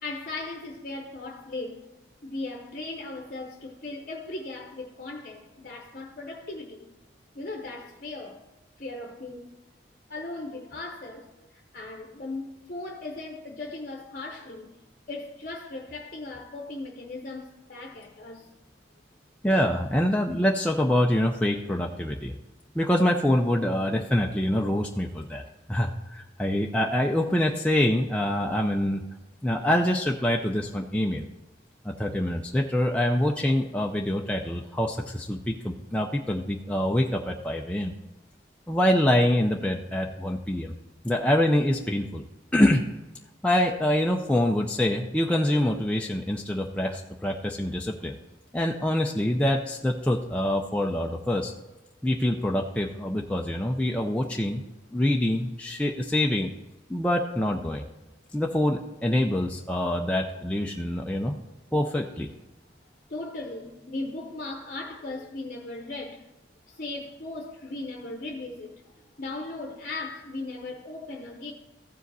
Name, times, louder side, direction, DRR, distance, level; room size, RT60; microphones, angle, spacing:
voice 1, 0.0-1.9 2.2-6.9 7.3-8.4 8.8-9.5 10.1-14.7 15.1-18.5 63.1-66.3 66.7-71.5, left 2 dB, 45° left, 0.8 m, -38 dB
voice 2, 19.4-22.3 22.8-25.4 25.7-29.0 29.4-31.3 31.8-37.9 38.7-40.7 41.0-42.2 42.5-42.9 43.4-48.2 48.5-51.5 52.0-54.6 54.9-56.5 56.9-57.8 58.3-61.4 61.7-62.3, left 1 dB, 5° left, 0.4 m, -25 dB
15.0 x 5.0 x 4.0 m
head